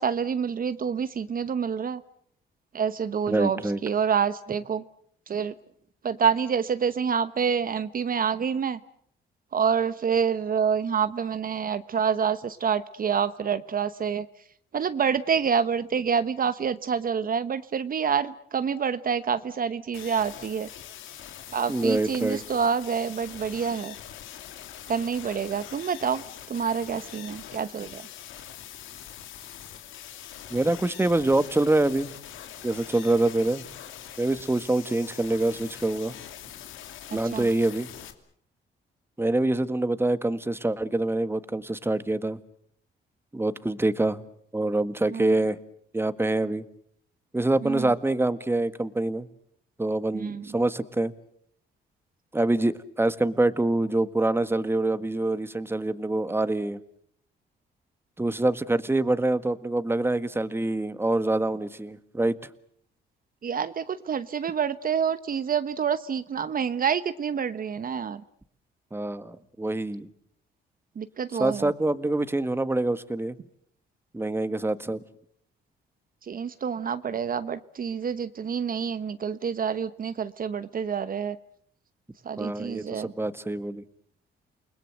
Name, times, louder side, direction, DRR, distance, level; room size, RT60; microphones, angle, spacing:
voice 1, 0.0-2.0 2.7-4.8 5.3-5.5 6.0-8.8 9.5-14.3 14.7-20.7 21.5-23.9 24.9-26.2 26.5-28.0 37.1-37.4 45.1-45.3 47.6-47.9 50.1-50.4 63.4-68.2 71.0-71.7 76.3-81.4 82.2-83.1, right 7 dB, 45° right, 12 dB, 1.1 m, -27 dB
voice 2, 3.3-3.8 21.7-22.4 30.5-32.1 32.6-33.7 34.2-36.1 37.1-37.9 39.2-42.4 43.3-44.2 44.5-45.6 45.9-46.6 47.3-49.3 49.8-51.1 52.3-56.8 58.2-62.4 68.9-70.1 71.4-73.4 74.1-75.0 82.4-83.8, right 2 dB, 10° right, 12 dB, 1.7 m, -25 dB
sound 1, 19.9-38.1, left 10 dB, 90° left, 3.0 m, -43 dB
29.0 x 21.0 x 7.9 m, 0.67 s
cardioid pair, 90°, 20 cm